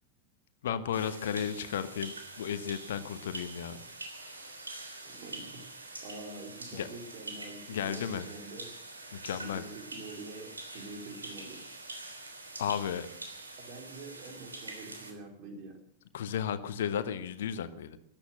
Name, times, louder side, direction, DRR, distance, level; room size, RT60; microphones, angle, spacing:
voice 1, 0.6-3.8 4.1-4.5 6.7-6.9 7.7-8.2 9.1-9.6 12.6-13.1 16.1-18.0, left 8 dB, 60° left, 12 dB, 1.2 m, -34 dB
sound 1, 0.9-15.1, right 2 dB, 80° right, 3.4 m, -45 dB
voice 2, 5.0-5.7 6.0-8.6 9.4-11.6 13.6-15.8, right 3 dB, 40° right, 4 dB, 4.6 m, -46 dB
14.5 x 12.0 x 7.8 m, 0.75 s
figure-of-eight pair, 90°, 0 cm